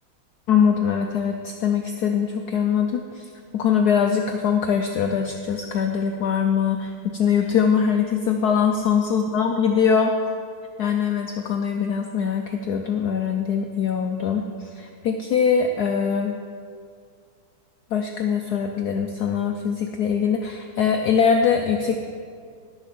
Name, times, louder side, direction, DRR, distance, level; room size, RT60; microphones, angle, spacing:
voice 1, 0.5-10.1 10.8-16.4 17.9-22.0, left 7 dB, 90° left, 4 dB, 0.8 m, -22 dB
11.0 x 7.0 x 5.9 m, 2.2 s
omnidirectional pair, 2.4 m